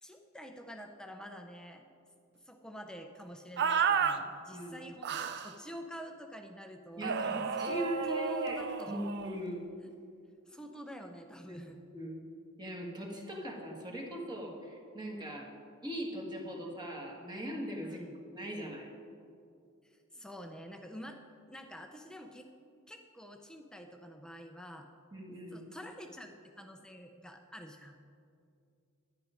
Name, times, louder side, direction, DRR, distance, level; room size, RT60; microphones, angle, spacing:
voice 1, 0.0-1.9 2.3-9.0 10.5-11.8 17.8-18.2 19.8-21.2 21.5-22.5 22.9-24.9 25.5-28.0, equal, 5° left, 4 dB, 0.5 m, -47 dB
sound 1, 3.6-4.2 5.0-5.5 7.0-9.3, right 7 dB, 50° right, 0.5 m, -32 dB
voice 2, 4.5-4.9 7.0-8.6 8.9-9.6 11.5-11.6 11.9-12.2 12.6-15.5 15.8-18.0 18.3-18.9 25.1-25.6, equal, 20° right, -2 dB, 1.7 m, -40 dB
11.0 x 10.0 x 5.1 m, 2.5 s
head